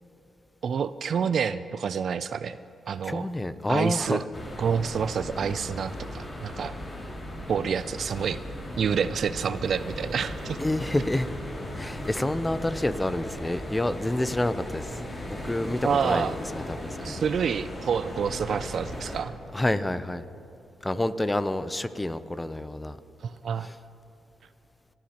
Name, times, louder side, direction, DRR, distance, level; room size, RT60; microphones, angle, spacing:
voice 1, 0.6-2.6 2.9-3.3 3.7-4.2 4.6-6.8 7.5-8.4 8.8-10.6 15.8-16.3 17.0-19.3 23.2-23.7, right 7 dB, 65° right, 14 dB, 0.4 m, -28 dB
voice 2, 3.0-4.2 10.6-11.3 11.7-17.2 19.5-20.3 20.8-23.0 23.6-23.7, left 1 dB, 15° left, 13 dB, 0.5 m, -28 dB
sound 1, 4.3-19.2, left 1 dB, 30° left, 2.5 m, -37 dB
26.0 x 11.5 x 2.9 m, 2.9 s
cardioid pair, 75°, 0 cm